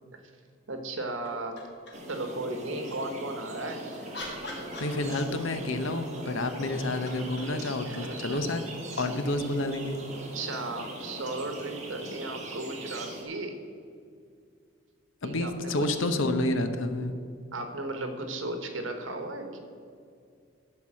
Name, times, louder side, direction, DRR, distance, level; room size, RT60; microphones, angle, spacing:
voice 1, 0.7-1.6 2.0-3.8 7.8-8.4 10.1-13.6 15.2-16.3 17.5-19.6, right 2 dB, 85° right, 5 dB, 1.3 m, -36 dB
sound 1, 1.2-2.2 3.6-5.5 6.5-9.1 11.2-11.3, left 1 dB, 60° left, 2.4 m, -45 dB
sound 2, 1.9-13.2, right 1 dB, 35° right, 1.6 m, -40 dB
voice 2, 4.8-8.6 9.0-10.0 15.2-17.1, left 2 dB, 85° left, 9 dB, 0.8 m, -29 dB
12.0 x 4.7 x 7.5 m, 2.3 s
head